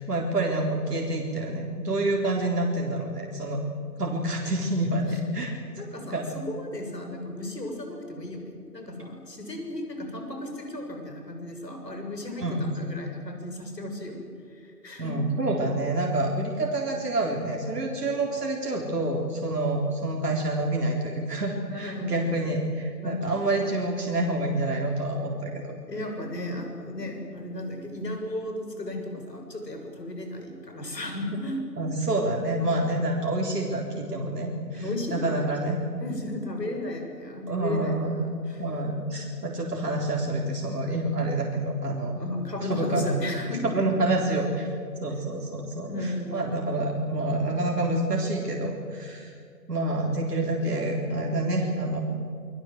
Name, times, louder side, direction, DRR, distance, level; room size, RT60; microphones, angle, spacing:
voice 1, 0.0-3.7 4.0-5.5 6.1-6.3 12.4-12.7 15.0-25.7 31.8-35.8 37.5-38.2 38.6-42.1 42.7-43.2 43.6-44.7 45.0-49.3 49.7-52.0, right 2 dB, 70° right, -1 dB, 4.0 m, -27 dB
voice 2, 5.8-14.2 14.5-15.1 21.7-22.2 23.0-23.5 25.9-31.6 34.7-35.3 36.0-38.7 42.2-43.6 45.9-46.4, left 1 dB, 75° left, 3 dB, 7.3 m, -35 dB
25.0 x 21.0 x 7.9 m, 2.4 s
figure-of-eight pair, 170°, 49 cm